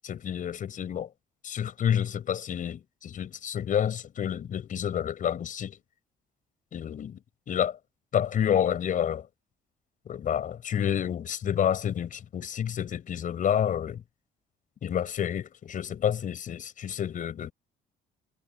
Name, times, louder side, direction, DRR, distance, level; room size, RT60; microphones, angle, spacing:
voice 1, 0.0-1.1 1.4-5.8 6.7-7.2 7.5-7.8 8.1-9.3 10.1-14.0 14.8-17.5, left 9 dB, 50° left, 6.2 m, -29 dB
cardioid pair, 110°, 17 cm